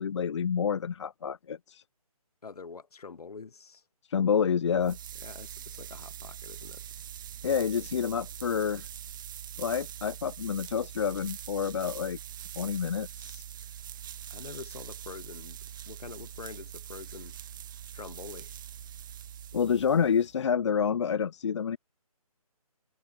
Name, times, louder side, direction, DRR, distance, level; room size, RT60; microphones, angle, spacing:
voice 1, 0.0-1.8 4.1-5.0 7.4-8.9 9.6-12.2 12.6-13.4 19.5-21.8, left 7 dB, 50° left, 0.5 m, -28 dB
voice 2, 2.4-3.8 5.2-6.8 14.3-15.6 15.9-17.4 17.9-18.5, left 5 dB, 75° left, 1.4 m, -45 dB
sound 1, 4.6-20.4, right 10 dB, 35° right, 1.3 m, -43 dB
figure-of-eight pair, 155°, 20 cm